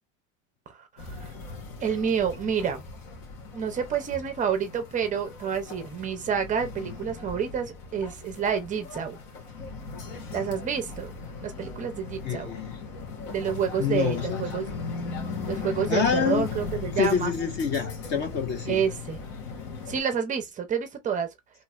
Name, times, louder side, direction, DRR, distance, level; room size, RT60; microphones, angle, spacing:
voice 1, 0.7-1.3 1.8-2.8 3.5-9.2 10.3-11.1 11.4-12.5 13.3-14.8 15.5-17.3 18.7-19.2 19.9-21.3, right 7 dB, 20° right, 0.5 m, -29 dB
sound 1, 1.0-20.0, left 4 dB, 75° left, 1.5 m, -38 dB
voice 2, 12.2-12.8 13.8-14.5 15.9-16.5 17.0-18.8, left 7 dB, 30° left, 0.4 m, -27 dB
3.1 x 3.0 x 2.3 m
supercardioid pair, 145°, 39 cm